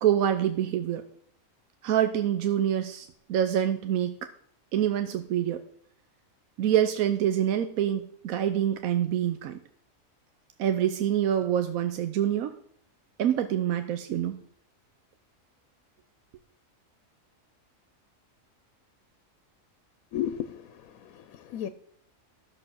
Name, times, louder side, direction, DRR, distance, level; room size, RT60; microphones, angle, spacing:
voice 1, 0.0-1.0 1.8-4.2 4.7-5.6 6.6-9.6 10.6-12.5 13.2-14.4, right 10 dB, 80° right, 9 dB, 1.1 m, -26 dB
voice 2, 20.1-21.7, left 10 dB, 85° left, 12 dB, 1.1 m, -34 dB
12.0 x 6.9 x 6.1 m, 0.65 s
omnidirectional pair, 1.4 m